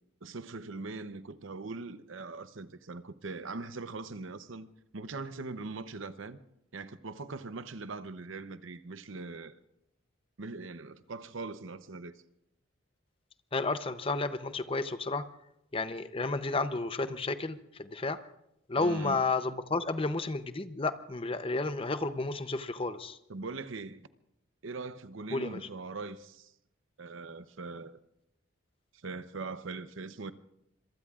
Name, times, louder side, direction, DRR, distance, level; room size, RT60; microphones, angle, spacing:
voice 1, 0.2-4.7 4.9-6.4 6.7-9.6 10.4-12.2 18.8-19.2 23.3-24.1 24.6-26.5 27.0-28.0 28.9-30.3, right 3 dB, 70° right, 0.8 m, -41 dB
voice 2, 13.5-15.2 15.7-18.2 18.7-23.2 25.3-25.6, left 3 dB, 25° left, 0.7 m, -32 dB
26.0 x 23.0 x 2.4 m
head